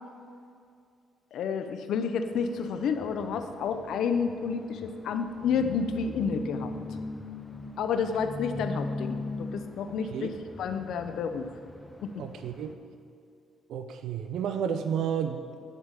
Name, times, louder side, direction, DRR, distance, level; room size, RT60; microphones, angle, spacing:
voice 1, 1.3-6.7 7.8-10.3 10.6-11.5 12.0-12.1, left 6 dB, 75° left, 8 dB, 0.6 m, -30 dB
sound 1, 2.3-12.7, left 2 dB, 15° left, 0.6 m, -40 dB
voice 2, 9.9-10.3 12.2-12.8 13.7-15.5, right 8 dB, 80° right, 8 dB, 0.4 m, -32 dB
10.0 x 3.6 x 6.7 m, 2.3 s
cardioid pair, 90°, 0 cm